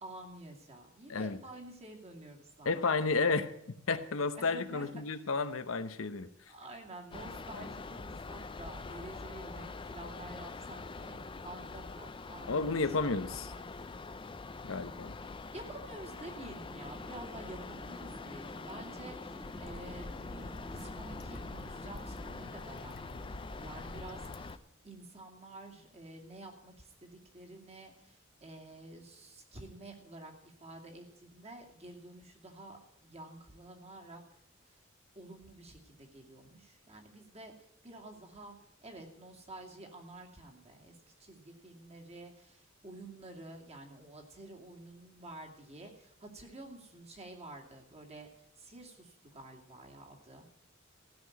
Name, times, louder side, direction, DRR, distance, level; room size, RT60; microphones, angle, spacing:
voice 1, 0.0-2.8 3.2-3.4 4.4-5.0 6.5-11.2 11.4-13.6 15.5-24.6 24.8-34.2 34.7-34.8 35.1-37.5 37.8-38.6 38.8-40.9 41.2-50.5, right 2 dB, 30° right, 0 dB, 2.5 m, -50 dB
voice 2, 1.1-1.4 2.6-3.5 3.9-6.3 7.5-7.7 12.5-13.5 14.6-15.1, left 4 dB, 80° left, 10 dB, 0.9 m, -32 dB
sound 1, 7.1-24.6, left 3 dB, 25° left, 0.5 m, -45 dB
sound 2, 16.7-22.6, equal, 5° right, 1.3 m, -50 dB
sound 3, 19.4-24.6, left 2 dB, 55° left, 1.0 m, -47 dB
15.5 x 6.0 x 9.4 m, 0.75 s
head